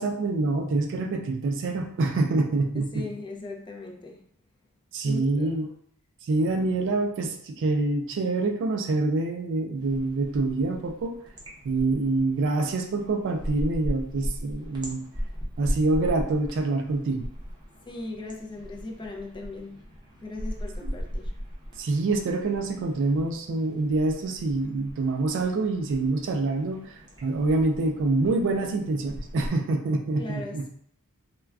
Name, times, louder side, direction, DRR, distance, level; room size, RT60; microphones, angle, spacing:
voice 1, 0.0-3.1 4.9-5.7 6.3-11.1 11.6-15.0 15.6-17.3 20.8-20.9 21.8-30.7, right 3 dB, 55° right, 4 dB, 0.3 m, -26 dB
voice 2, 2.9-4.2 5.0-5.7 17.9-19.9 20.2-21.3 30.2-30.7, left 2 dB, 20° left, 0 dB, 0.4 m, -38 dB
sound 1, 9.8-29.5, equal, 20° right, 0.6 m, -38 dB
2.3 x 2.2 x 3.3 m, 0.65 s
head